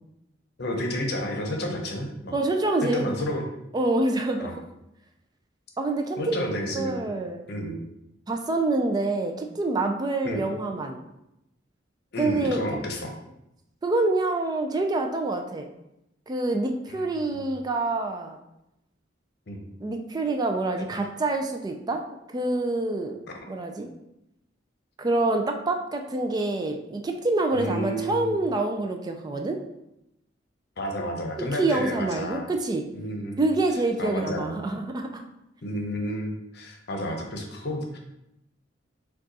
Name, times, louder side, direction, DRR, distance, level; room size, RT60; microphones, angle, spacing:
voice 1, 0.6-2.3 2.8-3.4 4.4-4.5 6.2-7.0 7.5-7.8 10.2-10.4 12.1-13.1 17.3-17.5 19.5-19.6 27.5-28.3 30.8-32.5 32.9-33.4 34.0-34.5 35.6-38.0, equal, 60° left, 2 dB, 0.8 m, -31 dB
voice 2, 2.3-3.1 3.7-4.5 5.8-6.4 6.7-7.4 8.3-11.0 12.2-12.6 13.8-15.7 16.3-18.4 19.8-22.0 22.3-23.2 23.5-23.9 25.0-29.6 31.6-32.8 33.4-35.2, right 2 dB, 20° right, 4 dB, 0.3 m, -26 dB
5.1 x 2.4 x 3.9 m, 0.85 s
head